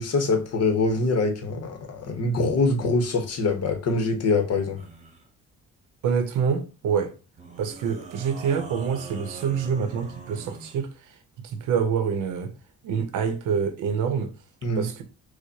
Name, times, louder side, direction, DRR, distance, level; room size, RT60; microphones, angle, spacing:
voice 1, 0.0-4.8 14.6-14.9, left 3 dB, 55° left, 1.0 m, -24 dB
sound 1, 4.8-5.3 7.4-10.8, right 4 dB, 25° right, 1.0 m, -42 dB
voice 2, 6.0-7.2 7.6-12.5 12.8-14.3 14.8-15.0, right 6 dB, 85° right, 0.7 m, -26 dB
4.7 x 2.1 x 2.7 m
cardioid pair, 90°, 30 cm